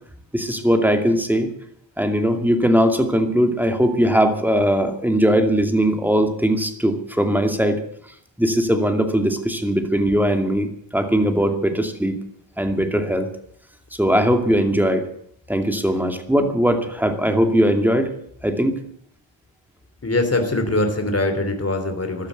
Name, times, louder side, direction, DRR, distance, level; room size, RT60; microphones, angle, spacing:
voice 1, 0.3-1.5 2.0-7.8 8.4-12.2 12.6-13.3 14.0-15.0 15.5-18.1 18.4-18.7, equal, 5° right, 5 dB, 2.4 m, -19 dB
voice 2, 20.0-22.3, left 2 dB, 30° left, 5 dB, 3.0 m, -22 dB
14.5 x 12.0 x 8.1 m, 0.67 s
wide cardioid pair, 95°, 47 cm